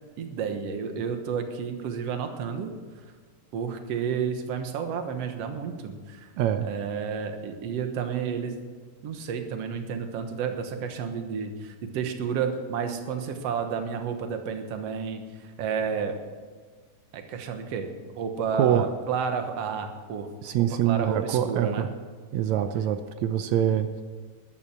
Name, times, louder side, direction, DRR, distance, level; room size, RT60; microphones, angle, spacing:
voice 1, 0.2-2.7 3.5-6.3 6.6-8.6 9.0-16.2 17.1-20.3 20.8-21.9, right 6 dB, 60° right, 6 dB, 2.1 m, -31 dB
voice 2, 6.4-6.7 18.6-18.9 20.4-21.9 22.3-24.0, right 10 dB, 75° right, 10 dB, 1.7 m, -24 dB
13.5 x 11.5 x 6.0 m, 1.5 s
omnidirectional pair, 3.7 m